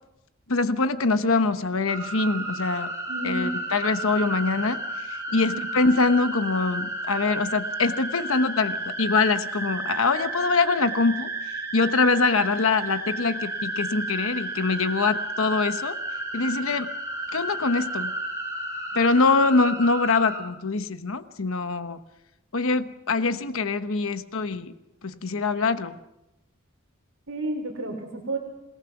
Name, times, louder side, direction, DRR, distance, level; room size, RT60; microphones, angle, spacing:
voice 1, 0.5-2.9 3.2-4.8 5.1-11.3 11.7-16.0 16.3-16.9 17.3-18.1 18.9-22.0 22.5-24.7 25.0-26.0, left 3 dB, 70° left, 10 dB, 1.1 m, -24 dB
sound 1, 1.9-20.4, right 2 dB, 15° right, 6.2 m, -32 dB
voice 2, 3.1-3.5 5.3-5.7 27.3-28.4, right 1 dB, 65° right, 0 dB, 3.9 m, -31 dB
27.5 x 19.0 x 6.1 m, 0.93 s
head